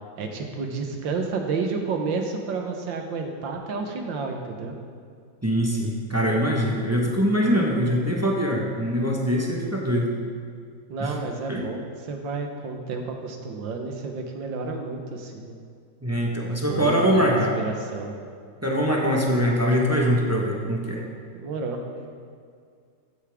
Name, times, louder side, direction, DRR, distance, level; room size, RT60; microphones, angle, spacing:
voice 1, 0.2-4.8 10.9-15.6 16.7-18.2 21.3-21.8, right 4 dB, 85° right, 3 dB, 1.8 m, -31 dB
voice 2, 5.4-10.1 11.0-11.1 11.5-11.6 16.0-17.6 18.6-21.0, equal, 10° right, -1 dB, 0.8 m, -23 dB
14.0 x 8.4 x 3.5 m, 2.2 s
omnidirectional pair, 2.0 m